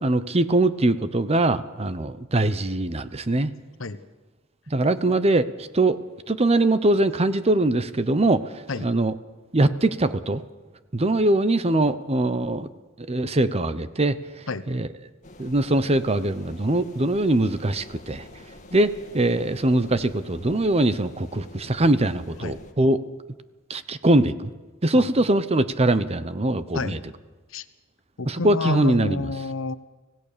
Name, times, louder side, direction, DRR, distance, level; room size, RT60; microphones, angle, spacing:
voice 1, 0.0-3.5 4.7-5.5 5.7-6.0 6.3-8.4 8.8-9.1 9.5-10.4 10.9-12.7 13.0-14.2 14.7-14.9 15.4-18.2 18.7-23.0 23.7-24.5 24.8-27.0 28.3-29.2, right 2 dB, 30° right, 13 dB, 0.9 m, -22 dB
sound 1, 15.2-22.7, left 1 dB, 40° left, 2.2 m, -46 dB
voice 2, 24.9-25.2 26.7-27.0 27.5-27.6 28.2-29.8, left 3 dB, 75° left, 13 dB, 1.0 m, -29 dB
25.5 x 17.0 x 6.9 m, 1.2 s
head